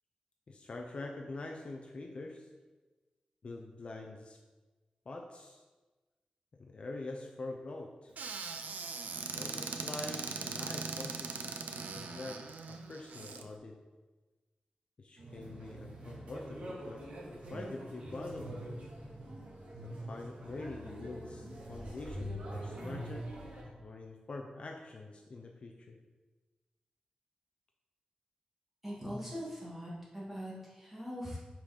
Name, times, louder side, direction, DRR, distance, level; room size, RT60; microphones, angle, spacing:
voice 1, 0.5-2.5 3.4-4.4 5.1-5.6 6.5-8.1 9.3-13.8 15.0-18.7 19.8-23.3 23.6-26.0, left 2 dB, 45° left, 2 dB, 0.6 m, -45 dB
Squeak / Cupboard open or close, 8.2-13.4, right 4 dB, 90° right, 0.5 m, -40 dB
sound 1, 15.2-23.6, right 1 dB, 50° right, 1.7 m, -44 dB
voice 2, 28.8-31.4, equal, 10° right, -6 dB, 2.0 m, -41 dB
5.9 x 5.2 x 4.9 m, 1.2 s
wide cardioid pair, 165°, 3 cm